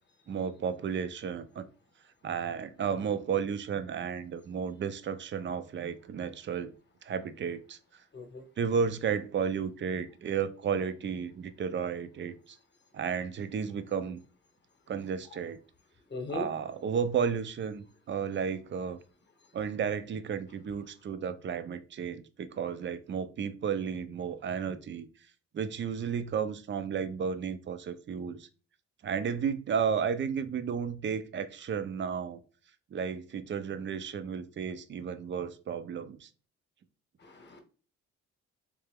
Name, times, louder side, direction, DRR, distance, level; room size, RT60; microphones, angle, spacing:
voice 1, 0.3-1.6 2.2-6.7 7.0-7.8 8.6-12.3 12.9-14.2 14.9-15.6 16.3-19.0 19.5-25.1 25.5-28.5 29.0-32.4 32.9-36.3, right 7 dB, 40° right, 0.5 m, -33 dB
voice 2, 8.1-8.4 16.1-16.5 37.2-37.6, left 2 dB, 35° left, 1.0 m, -38 dB
3.3 x 2.8 x 3.4 m
cardioid pair, 90°, 30 cm